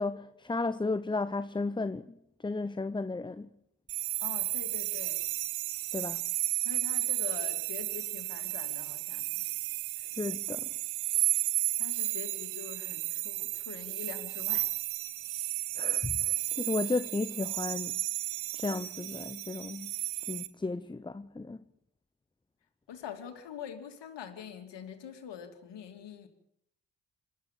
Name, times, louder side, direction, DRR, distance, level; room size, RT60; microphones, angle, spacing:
voice 1, 0.0-3.5 5.9-6.2 10.0-10.7 15.8-17.9 18.5-19.9 20.3-21.6, left 3 dB, 10° left, 0.7 m, -34 dB
sound 1, 3.9-20.5, right 18 dB, 70° right, 1.1 m, -33 dB
voice 2, 4.2-5.2 6.6-9.5 11.8-14.7 22.9-26.3, left 8 dB, 60° left, 3.0 m, -44 dB
27.0 x 13.0 x 7.5 m
hypercardioid pair, 45°, 48 cm